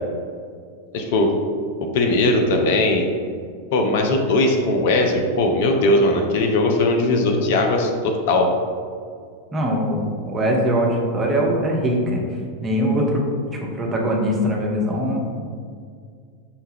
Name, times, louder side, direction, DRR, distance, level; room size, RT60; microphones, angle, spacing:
voice 1, 0.9-1.3 1.8-3.1 3.7-8.5, left 2 dB, 50° left, 3 dB, 0.4 m, -19 dB
voice 2, 9.5-12.2 12.6-13.2 13.5-15.2, equal, 20° right, -1 dB, 0.7 m, -21 dB
5.4 x 2.2 x 3.3 m, 2.2 s
figure-of-eight pair, 90°, 0 cm